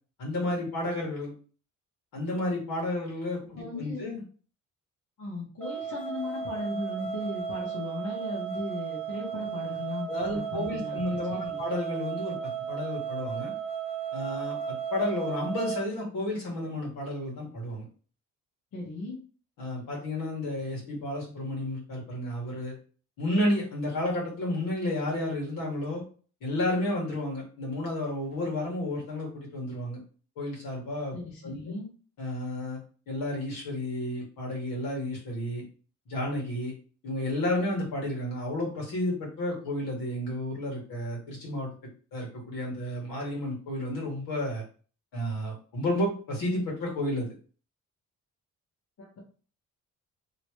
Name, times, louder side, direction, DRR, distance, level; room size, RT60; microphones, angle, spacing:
voice 1, 0.2-1.3 2.1-4.2 10.1-13.5 14.1-17.8 19.6-22.8 23.2-26.0 26.4-30.0 30.4-31.2 31.4-31.6 32.2-32.8 33.1-35.6 36.1-36.7 37.0-41.7 42.1-44.6 45.1-47.3, left 1 dB, 85° left, -3 dB, 1.7 m, -31 dB
voice 2, 3.5-4.1 5.2-11.0 11.3-11.6 18.7-19.2 31.1-31.9 49.0-49.2, left 2 dB, 65° left, -5 dB, 1.3 m, -37 dB
sound 1, 5.6-15.8, right 8 dB, 5° left, 0.8 m, -35 dB
3.1 x 3.0 x 3.0 m, 0.39 s
cardioid pair, 120°, 33 cm